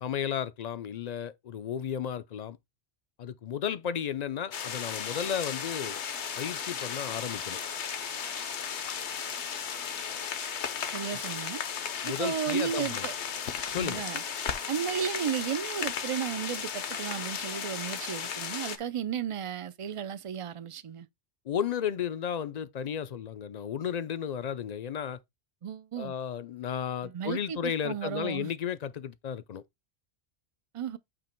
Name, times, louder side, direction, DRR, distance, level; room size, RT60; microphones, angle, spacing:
voice 1, 0.0-2.6 3.2-6.0 6.4-7.6 11.1-11.2 12.0-13.1 13.7-14.0 21.5-25.2 26.0-29.6, left 8 dB, 55° left, 0.5 m, -33 dB
sound 1, 4.5-18.8, left 7 dB, 80° left, 1.2 m, -35 dB
voice 2, 10.9-11.6 12.1-13.1 13.8-14.2 14.7-21.1 25.6-26.1 27.0-28.5 30.7-31.0, right 8 dB, 55° right, 0.3 m, -34 dB
8.7 x 2.9 x 4.4 m
omnidirectional pair, 1.1 m